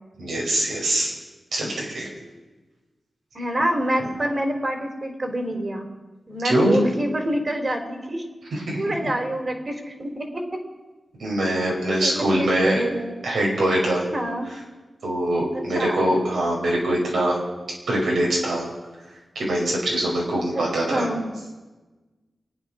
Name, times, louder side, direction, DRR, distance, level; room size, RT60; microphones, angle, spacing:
voice 1, 0.2-1.1 1.5-2.1 6.4-6.8 8.5-8.9 11.2-12.8 13.2-14.0 15.0-17.4 17.9-18.7 19.4-21.0, right 1 dB, 90° right, -2 dB, 5.4 m, -23 dB
voice 2, 3.3-5.9 6.3-8.2 8.8-10.6 12.0-13.1 14.1-14.5 15.5-16.0 20.5-20.6 20.9-21.2, right 1 dB, 45° right, 3 dB, 3.8 m, -27 dB
24.0 x 9.3 x 6.4 m, 1.2 s
cardioid pair, 50°, 0 cm